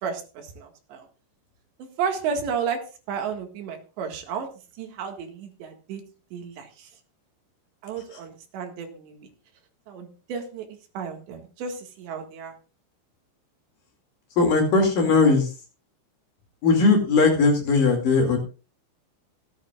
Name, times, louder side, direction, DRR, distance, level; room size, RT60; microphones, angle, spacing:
voice 1, 0.0-1.1 2.0-2.8 3.1-4.5 4.8-6.0 6.3-6.9 7.8-9.3 9.9-10.7 11.0-12.5, right 6 dB, 70° right, 4 dB, 4.0 m, -32 dB
voice 2, 14.4-15.5 16.6-18.4, left 3 dB, 50° left, 2 dB, 3.6 m, -19 dB
26.0 x 8.8 x 2.4 m, 0.34 s
omnidirectional pair, 5.4 m